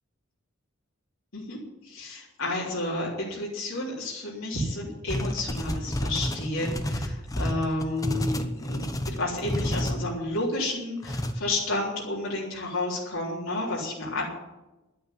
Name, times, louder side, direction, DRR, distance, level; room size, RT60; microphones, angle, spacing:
voice 1, 1.3-14.2, left 2 dB, 85° left, -5 dB, 3.6 m, -31 dB
sound 1, 5.1-10.0 11.0-11.3, left 1 dB, 15° left, 0.9 m, -30 dB
11.5 x 8.5 x 9.3 m, 1.0 s
head